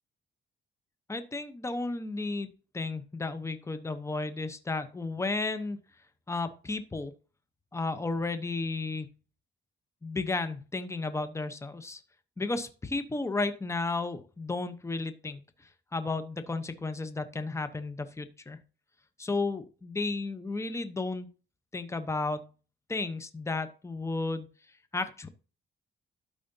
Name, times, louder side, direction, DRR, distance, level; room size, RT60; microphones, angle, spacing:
voice 1, 1.1-2.5 2.7-5.8 6.3-7.1 7.7-9.1 10.0-12.0 12.4-15.4 15.9-18.6 19.2-21.3 21.7-22.5 22.9-24.5 24.9-25.3, left 3 dB, 15° left, 10 dB, 0.9 m, -33 dB
12.5 x 5.0 x 2.8 m, 0.35 s
cardioid pair, 90°, 20 cm